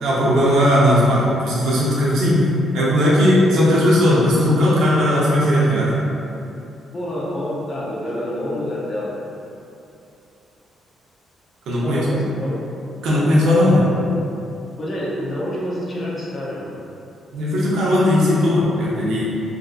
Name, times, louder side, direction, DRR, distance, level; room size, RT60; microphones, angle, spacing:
voice 1, 0.0-2.4 2.7-5.9 11.7-12.1 13.0-13.8 17.3-19.3, left 1 dB, 80° right, -6 dB, 0.8 m, -17 dB
voice 2, 6.9-9.1 11.8-12.5 13.9-14.0 14.8-16.7, left 1 dB, 40° left, -6 dB, 0.8 m, -27 dB
3.4 x 2.6 x 2.4 m, 2.7 s
cardioid pair, 90°, 0 cm